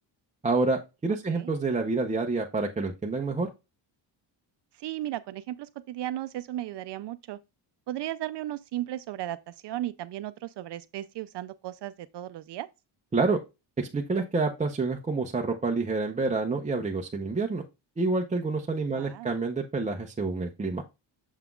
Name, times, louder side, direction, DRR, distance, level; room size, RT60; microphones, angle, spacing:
voice 1, 0.4-3.5 13.1-13.4 13.8-17.6 18.0-20.8, right 3 dB, 15° right, 0.6 m, -28 dB
voice 2, 4.7-7.4 7.9-12.7 18.9-19.3, right 13 dB, 65° right, 0.5 m, -35 dB
7.2 x 5.7 x 2.3 m
cardioid pair, 155°, 45 cm